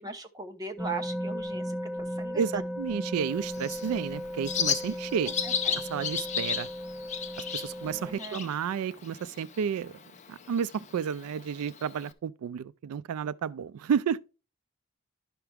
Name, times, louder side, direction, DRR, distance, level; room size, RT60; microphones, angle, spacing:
voice 1, 0.0-2.6 4.8-5.0 5.3-5.8 7.8-8.5, right 3 dB, 15° right, 0.8 m, -40 dB
sound 1, 0.8-8.1, equal, ahead, 1.5 m, -36 dB
voice 2, 2.4-5.3 5.8-6.7 7.4-10.0 10.3-14.2, right 7 dB, 90° right, 0.3 m, -31 dB
Bird, 3.1-12.1, left 7 dB, 35° left, 0.6 m, -35 dB
11.0 x 5.8 x 3.4 m
head